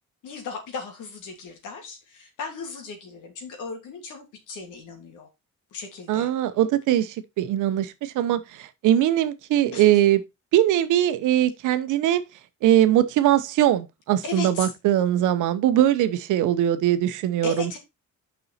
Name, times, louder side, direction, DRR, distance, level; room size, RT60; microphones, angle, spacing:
voice 1, 0.2-5.3 5.7-6.3 9.7-9.9 14.2-14.7 17.4-17.8, left 4 dB, 85° left, 2.9 m, -36 dB
voice 2, 6.1-10.2 10.5-12.2 12.6-17.7, right 12 dB, 90° right, 0.9 m, -21 dB
6.9 x 5.5 x 4.2 m
cardioid pair, 90°, 30 cm